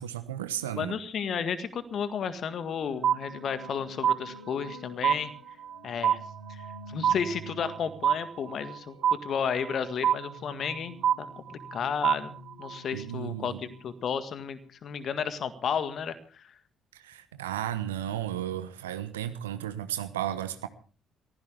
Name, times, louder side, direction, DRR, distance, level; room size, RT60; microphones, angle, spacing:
voice 1, 0.0-1.0 12.9-13.6 16.9-20.7, right 11 dB, 75° right, 12 dB, 1.2 m, -34 dB
voice 2, 0.7-5.3 5.8-6.2 6.5-6.6 6.9-9.0 9.2-12.3 12.6-16.4, left 7 dB, 45° left, 12 dB, 1.8 m, -33 dB
sound 1, 2.5-14.4, equal, 85° left, 7.1 m, -49 dB
sound 2, 3.0-3.7 4.0-4.8 5.0-5.8 6.0-6.8 7.0-7.8 8.0-8.8 9.0-9.8 10.0-10.8 11.0-11.8 12.0-12.8, right 9 dB, 50° right, 0.9 m, -26 dB
22.5 x 16.0 x 3.5 m, 0.38 s
figure-of-eight pair, 45°, 0 cm